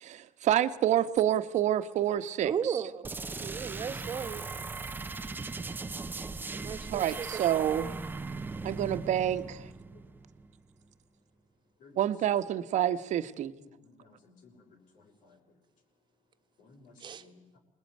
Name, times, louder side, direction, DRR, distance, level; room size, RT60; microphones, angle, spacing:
voice 1, 0.0-2.5 6.9-7.9 8.6-9.6 12.0-13.5, right 11 dB, 55° right, 11 dB, 1.3 m, -28 dB
voice 2, 2.4-3.1 3.4-4.4 6.5-7.4 7.8-8.0 17.0-17.2, right 7 dB, 30° right, 9 dB, 1.6 m, -35 dB
sound 1, 3.0-10.6, right 3 dB, 15° right, 0.9 m, -39 dB
voice 3, 13.7-15.4 16.6-16.9 17.2-17.4, left 4 dB, 65° left, 3 dB, 6.2 m, -58 dB
27.0 x 20.5 x 9.5 m, 1.0 s
cardioid pair, 175°, 15 cm